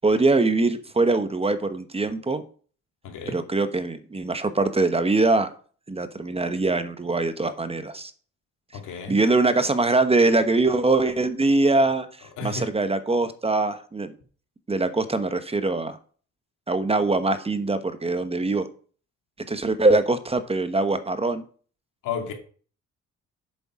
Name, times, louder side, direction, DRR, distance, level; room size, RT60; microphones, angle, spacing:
voice 1, 0.0-2.4 3.3-5.5 5.9-8.1 9.1-14.1 14.7-16.0 16.7-18.7 19.5-21.4, right 2 dB, 20° right, 10 dB, 1.0 m, -23 dB
voice 2, 3.0-3.4 8.7-9.2 12.4-12.7 22.0-22.3, left 5 dB, 85° left, 4 dB, 2.4 m, -32 dB
8.0 x 7.0 x 4.9 m, 0.42 s
cardioid pair, 90°, 30 cm